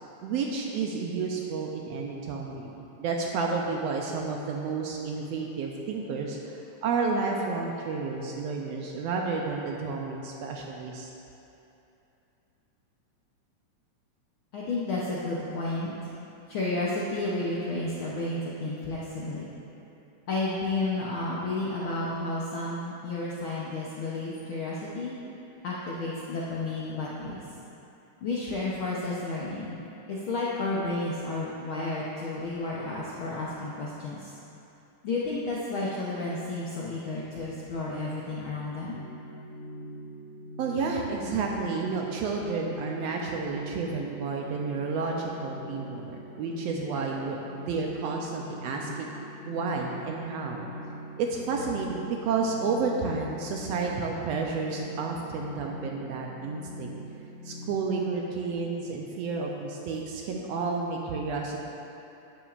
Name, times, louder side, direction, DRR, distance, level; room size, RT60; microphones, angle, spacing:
voice 1, 0.2-11.1 40.6-49.1 49.5-50.7 51.2-56.9 57.4-61.6, right 4 dB, 80° right, 0 dB, 1.5 m, -31 dB
voice 2, 14.5-15.9 16.5-19.4 20.3-25.2 25.6-27.4 28.2-29.8 30.1-34.3 35.0-39.0, left 2 dB, 85° left, -6 dB, 1.1 m, -31 dB
sound 1, 38.9-57.8, equal, 65° right, 3.0 m, -42 dB
11.5 x 10.0 x 2.5 m, 2.9 s
omnidirectional pair, 3.5 m